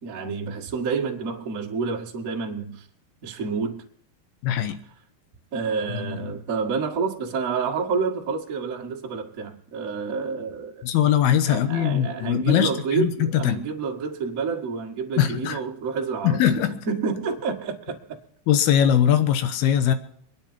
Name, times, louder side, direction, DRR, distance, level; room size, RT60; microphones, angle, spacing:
voice 1, 0.0-2.9 3.2-3.8 5.5-10.8 11.5-16.5 16.9-18.2, right 5 dB, 40° right, 1.1 m, -29 dB
voice 2, 4.4-4.8 5.9-6.3 10.8-12.7 13.0-13.6 15.2-15.6 16.2-16.8 18.5-19.9, left 10 dB, 70° left, 2.8 m, -21 dB
23.5 x 10.0 x 4.3 m
omnidirectional pair, 4.9 m